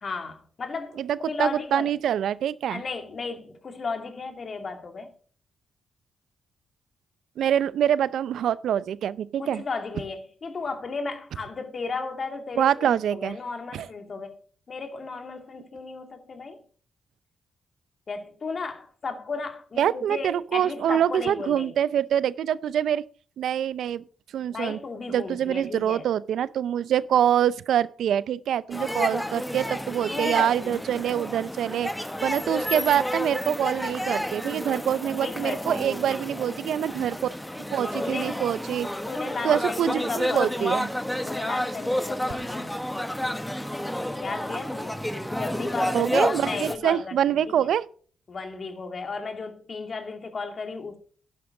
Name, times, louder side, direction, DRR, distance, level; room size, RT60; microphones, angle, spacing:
voice 1, 0.0-1.9 2.7-5.1 9.4-14.4 14.7-16.6 18.1-21.8 24.5-26.0 30.1-30.7 35.2-35.6 37.9-38.4 39.1-40.9 41.2-42.8 44.2-45.0 45.3-47.7 48.3-51.0, left 4 dB, 50° left, 2.5 m, -34 dB
voice 2, 1.0-2.8 7.4-9.6 12.6-13.4 13.7-13.9 19.8-23.0 23.4-24.0 24.3-24.8 25.1-31.9 32.2-37.2 37.7-38.9 39.4-40.9 45.9-47.8, right 10 dB, 75° right, 0.5 m, -25 dB
sound 1, 28.7-46.8, left 1 dB, 5° left, 1.4 m, -30 dB
11.5 x 10.0 x 3.8 m
supercardioid pair, 45°, 0 cm